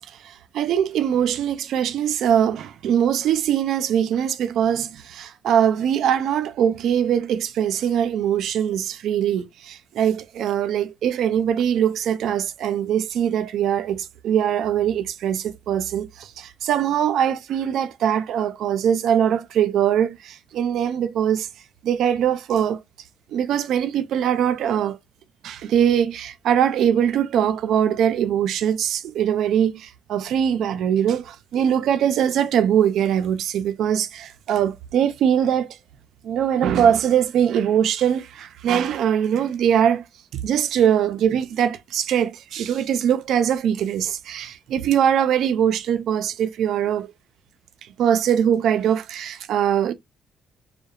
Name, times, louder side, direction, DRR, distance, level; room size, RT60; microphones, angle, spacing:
voice 1, 0.5-21.5 21.8-22.8 23.3-25.0 25.4-35.8 36.2-40.0 40.4-47.1 48.0-49.9, right 9 dB, 75° right, 0.4 m, -22 dB
2.8 x 2.1 x 2.2 m
cardioid pair, 90°, 0 cm